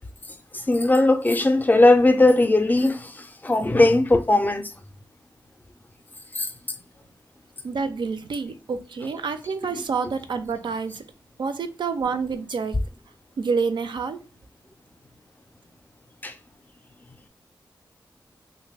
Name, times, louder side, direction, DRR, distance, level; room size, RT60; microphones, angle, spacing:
voice 1, 0.7-3.1 3.4-4.7 6.4-6.5 16.2-16.3, left 2 dB, 20° left, 0.4 m, -18 dB
voice 2, 7.6-11.0 11.4-12.8 13.4-14.2, right 5 dB, 75° right, 0.4 m, -28 dB
3.0 x 2.1 x 3.2 m
wide cardioid pair, 100°, 8 cm